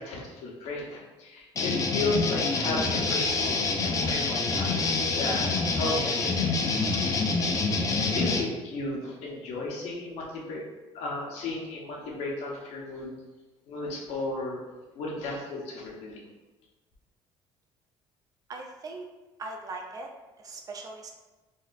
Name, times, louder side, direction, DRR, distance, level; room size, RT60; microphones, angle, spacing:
voice 1, 0.0-4.7 5.2-7.1 8.1-10.6 10.9-13.1 13.7-14.6 14.9-16.2, left 2 dB, 80° left, -2 dB, 0.9 m, -34 dB
sound 1, 1.6-8.4, left 3 dB, 30° left, 0.5 m, -26 dB
voice 2, 18.5-19.1 19.4-20.1 20.4-21.1, right 3 dB, 35° right, 1 dB, 0.5 m, -39 dB
4.1 x 2.4 x 2.4 m, 1.1 s
cardioid pair, 110°, 11 cm